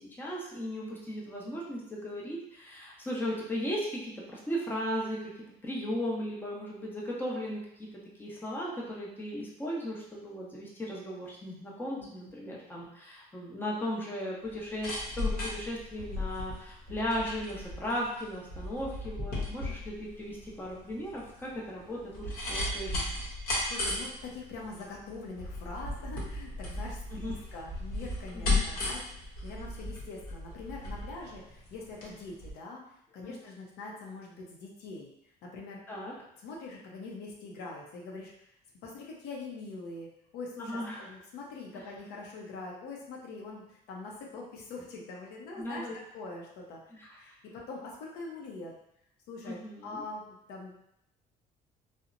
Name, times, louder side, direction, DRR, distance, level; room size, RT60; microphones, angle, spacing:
voice 1, 0.0-5.2 5.6-7.9 8.2-23.0 27.1-27.4 28.3-28.6 33.2-33.4 35.9-36.1 40.6-41.1 41.7-41.8 45.6-46.0 46.9-47.3 49.4-50.0, equal, 10° left, -4 dB, 0.6 m, -36 dB
voice 2, 12.0-12.3 23.7-35.1 35.4-35.8 36.4-38.3 38.8-45.9 46.1-46.8 47.2-48.7 49.3-50.8, left 3 dB, 85° left, -1 dB, 0.6 m, -43 dB
sound 1, 14.5-32.1 32.4-32.5, left 2 dB, 60° left, 0.9 m, -35 dB
2.8 x 2.0 x 2.5 m, 0.77 s
cardioid pair, 110°, 17 cm